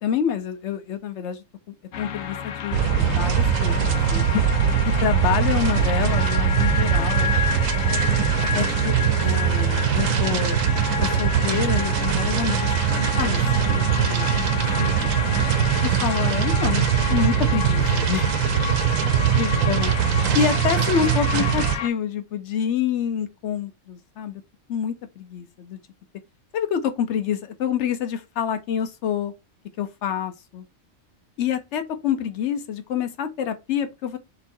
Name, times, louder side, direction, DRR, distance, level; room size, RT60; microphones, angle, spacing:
voice 1, 0.0-1.4 2.0-4.4 5.0-7.3 7.7-8.1 8.5-10.6 11.0-14.3 14.8-15.1 15.8-18.3 19.4-19.9 20.3-24.4 24.7-25.8 26.5-29.3 29.8-30.7 31.4-34.2, left 8 dB, 65° left, 1.0 m, -27 dB
sound 1, 1.9-21.9, left 8 dB, 90° left, 1.0 m, -30 dB
sound 2, 2.7-21.8, right 9 dB, 80° right, 1.0 m, -22 dB
3.6 x 3.0 x 4.3 m
omnidirectional pair, 1.4 m